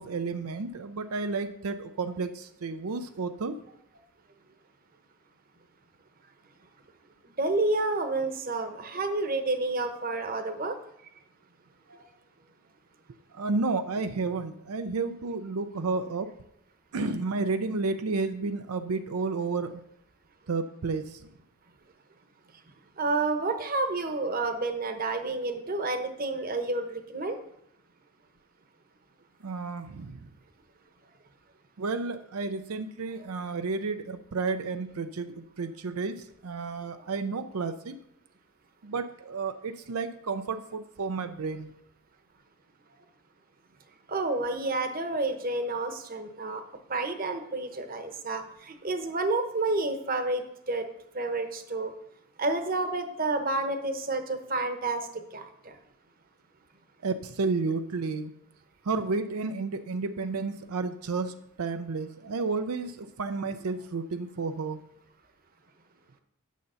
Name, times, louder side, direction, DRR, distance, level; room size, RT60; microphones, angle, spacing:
voice 1, 0.0-3.5 13.3-16.3 16.9-19.8 20.5-21.3 29.4-30.3 31.8-38.0 38.8-41.7 57.0-58.3 58.8-64.8, right 4 dB, 90° right, 9 dB, 0.6 m, -31 dB
voice 2, 7.4-10.7 11.9-12.0 23.0-27.4 44.1-46.6 46.9-50.9 51.1-51.9 52.4-55.0 55.3-55.7, right 2 dB, 40° right, 7 dB, 1.0 m, -30 dB
9.2 x 6.8 x 5.6 m, 0.77 s
head